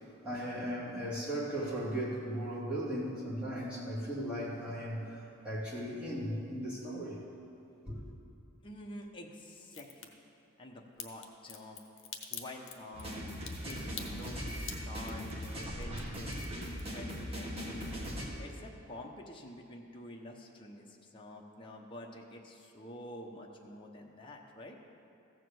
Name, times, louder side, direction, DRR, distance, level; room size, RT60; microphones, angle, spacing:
voice 1, 0.0-7.2 7.8-7.9, equal, 5° right, -9 dB, 2.6 m, -37 dB
voice 2, 8.6-10.1 10.6-11.8 12.3-13.3 13.7-18.0 18.4-24.8, left 1 dB, 25° left, 0 dB, 0.9 m, -48 dB
Crack, 9.7-10.1 11.0-17.2 17.5-18.2 18.5-18.6, left 8 dB, 60° left, 1.0 m, -46 dB
sound 1, 12.9-18.3, equal, 25° right, 1.6 m, -39 dB
14.5 x 5.0 x 7.7 m, 2.7 s
head